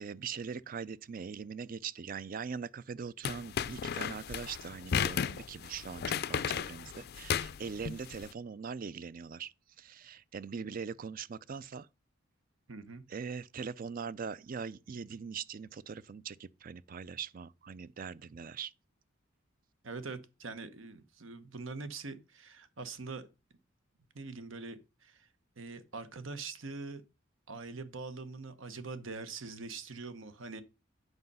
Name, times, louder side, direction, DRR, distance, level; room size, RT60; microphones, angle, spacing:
voice 1, 0.0-11.9 13.1-18.7, right 6 dB, 45° right, 0.4 m, -41 dB
sound 1, 3.2-8.3, left 7 dB, 50° left, 0.4 m, -34 dB
voice 2, 12.7-13.0 19.8-23.3 24.1-25.3 25.6-27.0 27.5-30.6, right 4 dB, 75° right, 1.0 m, -43 dB
8.0 x 5.6 x 5.4 m
head